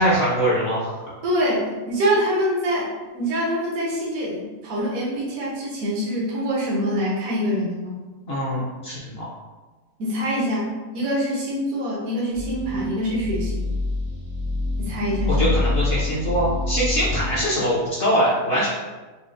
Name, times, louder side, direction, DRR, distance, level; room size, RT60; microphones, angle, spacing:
voice 1, 0.0-1.1 8.3-9.3 15.3-18.7, equal, 55° left, -7 dB, 0.8 m, -22 dB
voice 2, 1.2-2.9 3.1-8.0 10.0-13.8 14.8-15.5, equal, 80° right, -6 dB, 1.2 m, -25 dB
sound 1, 12.3-17.4, left 2 dB, 55° right, 0.7 m, -26 dB
4.2 x 2.0 x 2.5 m, 1.2 s
omnidirectional pair, 1.5 m